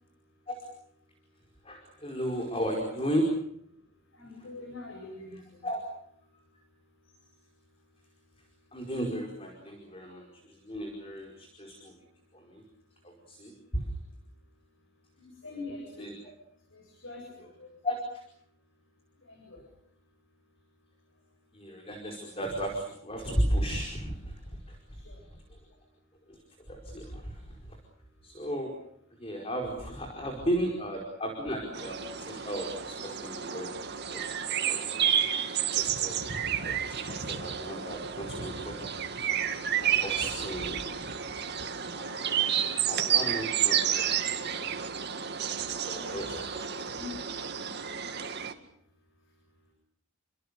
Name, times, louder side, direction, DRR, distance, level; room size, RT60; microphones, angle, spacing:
voice 1, 1.6-3.3 5.6-5.8 8.7-11.9 12.3-12.6 13.0-13.9 16.0-16.1 17.8-18.2 21.5-25.0 25.5-25.6 26.3-26.4 26.7-27.8 28.2-28.7 29.2-33.7 34.1-34.3 34.7-34.9 35.7-36.2 36.6-38.9 39.8-40.9 42.0-44.2 44.6-44.7 45.7-46.4 46.7-46.8, equal, 25° left, 2 dB, 4.9 m, -35 dB
voice 2, 4.1-5.7 15.2-16.1 16.7-17.3 17.6-17.7 19.3-19.6 25.0-25.2 45.9-46.4 46.9-47.2, left 3 dB, 60° left, 1 dB, 7.9 m, -44 dB
sound 1, 31.7-48.5, right 9 dB, 50° right, 2.2 m, -31 dB
30.0 x 25.0 x 6.8 m, 0.72 s
head